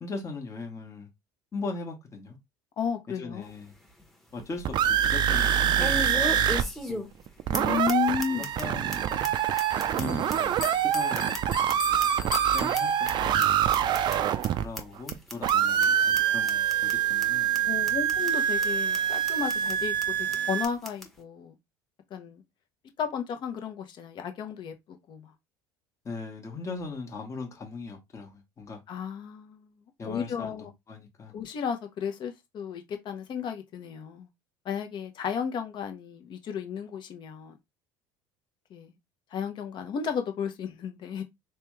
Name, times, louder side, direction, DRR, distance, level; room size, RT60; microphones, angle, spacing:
voice 1, 0.0-1.1 1.5-2.4 3.1-3.7 4.3-7.1 8.3-9.4 9.9-11.8 12.5-13.6 14.6-17.5 26.0-28.8 30.0-31.4, left 3 dB, 30° left, 1.1 m, -39 dB
voice 2, 2.8-3.5 7.5-8.5 17.6-21.6 22.1-22.4 23.0-25.3 28.9-29.7 30.0-30.7 31.3-34.3 34.6-37.6 38.7-38.9 39.3-41.2, left 7 dB, 45° left, 0.8 m, -33 dB
sound 1, 3.4-3.5 4.0-4.1 5.8-7.3 7.5-7.6 7.9-8.0 8.2-8.6 8.9-9.0 9.2-9.3 9.6-11.7 12.0-13.1 13.4-13.5 13.7-14.2 14.4-14.5 14.8-14.9 15.1-15.5 15.8-15.9 16.2-16.3 16.5-16.9 17.2-17.3 17.5-17.6 17.9-18.3 18.6-18.7 18.9-19.0 19.3-19.7 20.0-20.1 20.3-20.4 20.6-21.1, equal, ahead, 1.0 m, -35 dB
sound 2, 4.4-6.6 6.9-7.0 7.3-15.1 15.4-20.7, right 9 dB, 45° right, 0.4 m, -25 dB
Bell, 9.0-13.5, left 7 dB, 90° left, 0.5 m, -40 dB
3.3 x 2.3 x 3.1 m
hypercardioid pair, 75°, 11 cm